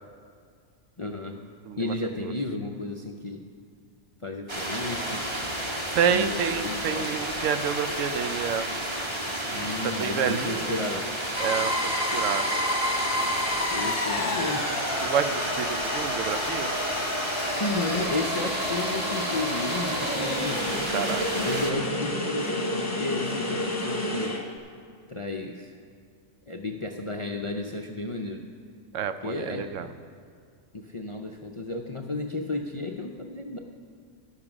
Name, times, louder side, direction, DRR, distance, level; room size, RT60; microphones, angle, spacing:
voice 1, 1.0-1.4 1.8-3.4 4.2-5.2 6.1-7.1 9.5-11.1 13.6-14.7 17.3-20.9 21.3-24.4 25.1-25.7 26.5-28.4 29.2-29.7 30.7-33.6, left 2 dB, 45° left, 1 dB, 0.4 m, -33 dB
voice 2, 1.6-1.9 2.2-2.3 5.9-8.7 9.8-10.8 11.4-12.6 15.0-16.7 20.9-21.2 28.9-29.9, right 7 dB, 80° right, 10 dB, 1.0 m, -28 dB
sound 1, 4.5-21.7, right 1 dB, 25° right, 1.1 m, -32 dB
sound 2, 11.3-24.4, left 1 dB, 15° left, 1.0 m, -30 dB
11.5 x 7.2 x 6.0 m, 2.3 s
omnidirectional pair, 1.3 m